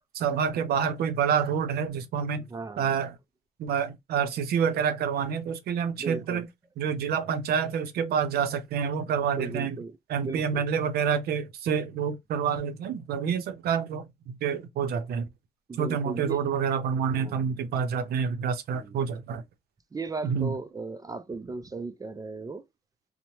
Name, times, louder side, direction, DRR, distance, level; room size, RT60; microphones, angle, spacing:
voice 1, 0.1-2.4 2.8-3.2 3.6-6.5 6.8-9.8 10.1-15.3 15.8-19.4 20.2-20.5, right 7 dB, 85° right, 0.6 m, -28 dB
voice 2, 2.5-2.9 6.0-6.5 9.1-9.9 10.2-10.6 15.7-16.4 17.1-17.5 18.7-19.0 19.9-22.6, right 3 dB, 25° right, 0.3 m, -36 dB
3.0 x 2.1 x 2.7 m
cardioid pair, 100°, 16 cm